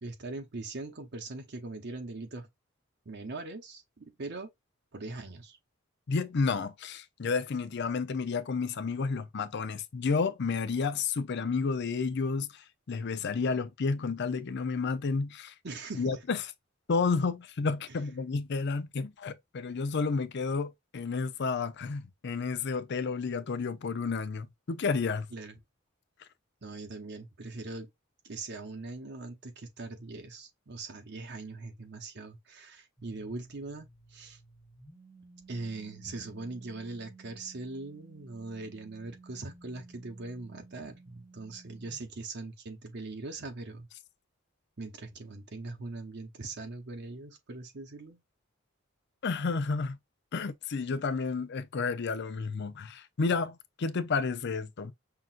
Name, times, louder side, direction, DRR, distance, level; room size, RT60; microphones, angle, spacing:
voice 1, 0.0-2.5 3.1-4.5 4.9-5.6 15.6-16.2 17.9-18.0 25.3-25.6 26.6-27.9 28.2-34.4 35.5-43.9 44.8-48.2, right 3 dB, 55° right, 0.9 m, -41 dB
voice 2, 6.1-12.6 12.9-15.5 16.0-16.4 16.9-25.3 49.2-50.0 50.3-54.9, left 4 dB, 60° left, 0.5 m, -31 dB
sound 1, 33.0-42.2, right 3 dB, 20° left, 1.4 m, -55 dB
5.8 x 2.5 x 2.4 m
head